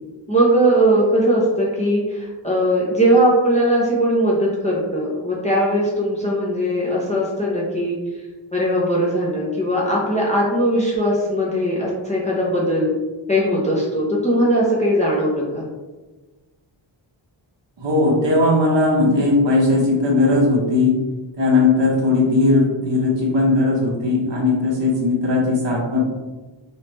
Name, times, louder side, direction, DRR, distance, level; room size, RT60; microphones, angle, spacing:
voice 1, 0.3-8.0 8.5-12.9 13.3-15.7, right 1 dB, 15° left, -6 dB, 0.6 m, -19 dB
voice 2, 17.8-21.0 21.4-26.0, left 2 dB, 60° right, -4 dB, 1.1 m, -18 dB
3.2 x 3.1 x 3.0 m, 1.2 s
wide cardioid pair, 170°, 48 cm